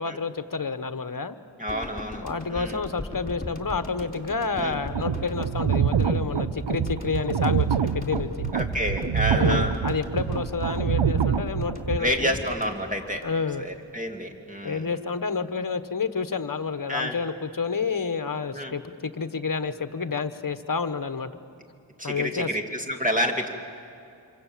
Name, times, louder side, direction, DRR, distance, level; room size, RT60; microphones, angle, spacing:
voice 1, 0.0-1.3 2.2-8.5 9.3-12.4 13.2-13.7 14.6-21.3 22.0-22.5, left 5 dB, 45° left, 11 dB, 1.2 m, -29 dB
voice 2, 1.6-2.8 4.6-4.8 8.5-9.7 12.0-13.2 13.6-14.9 16.9-17.2 18.5-18.7 22.0-23.5, equal, 15° right, 3 dB, 2.6 m, -29 dB
sound 1, 1.7-13.9 14.1-14.3, left 2 dB, 20° left, 3.6 m, -38 dB
sound 2, 4.7-12.0, right 8 dB, 70° right, 0.8 m, -26 dB
26.5 x 25.5 x 7.5 m, 2.6 s
wide cardioid pair, 75°, 46 cm